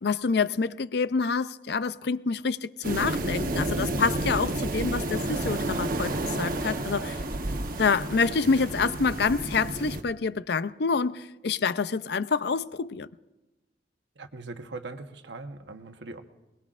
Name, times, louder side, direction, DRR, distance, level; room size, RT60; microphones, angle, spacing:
voice 1, 0.0-7.2 7.8-13.1, left 4 dB, 65° left, 0.5 m, -27 dB
sound 1, 2.8-10.0, right 2 dB, 50° right, 1.1 m, -30 dB
voice 2, 14.2-16.2, right 3 dB, 80° right, 1.1 m, -40 dB
21.5 x 21.0 x 2.5 m
head